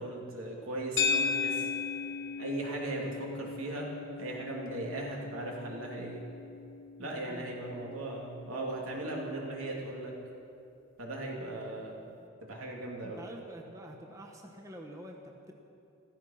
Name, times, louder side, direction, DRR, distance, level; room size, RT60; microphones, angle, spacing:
voice 1, 0.0-1.7 2.4-3.9 4.2-6.2 7.0-10.1 11.0-12.0 12.4-13.2, right 2 dB, 90° right, -2 dB, 2.9 m, -38 dB
sound 1, 1.0-9.4, left 5 dB, 60° left, 1.2 m, -37 dB
voice 2, 7.1-7.5 13.0-15.5, equal, 15° right, 1 dB, 1.2 m, -47 dB
15.0 x 14.5 x 5.9 m, 2.7 s
head